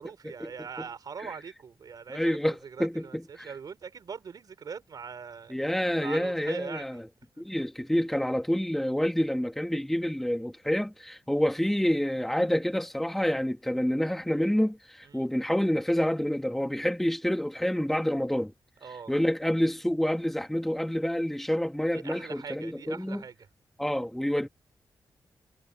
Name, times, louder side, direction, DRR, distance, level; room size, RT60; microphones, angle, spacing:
voice 1, 0.0-5.7 6.0-7.0 15.0-15.3 18.8-19.1 21.9-23.5, right 6 dB, 60° right, 3.8 m, -42 dB
voice 2, 2.1-3.5 5.5-7.1 7.4-18.5 19.1-23.2 23.8-24.5, equal, 5° left, 1.7 m, -28 dB
wide cardioid pair, 155°, 8 cm